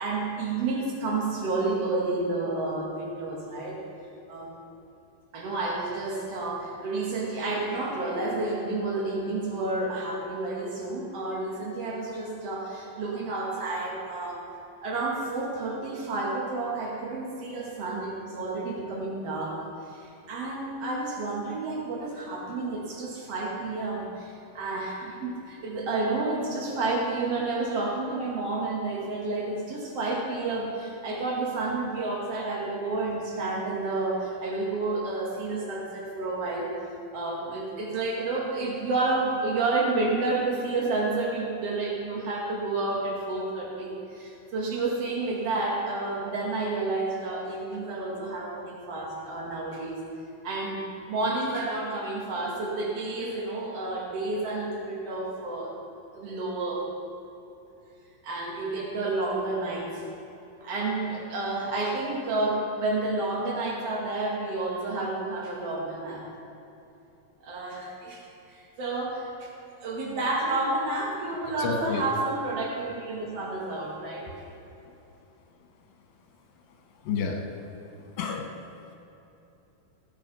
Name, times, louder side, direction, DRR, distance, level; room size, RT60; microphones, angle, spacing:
voice 1, 0.0-3.8 4.3-4.6 5.3-14.4 14.8-19.6 19.9-36.7 37.1-50.0 50.4-55.7 56.1-56.9 58.2-60.1 60.6-66.3 67.4-68.2 68.5-69.5 69.8-74.3, right 2 dB, 45° right, -2 dB, 2.9 m, -30 dB
voice 2, 71.6-72.0 77.0-77.4 78.2-78.6, left 5 dB, 75° left, 2 dB, 3.1 m, -30 dB
16.5 x 9.8 x 5.5 m, 2.9 s
omnidirectional pair, 4.2 m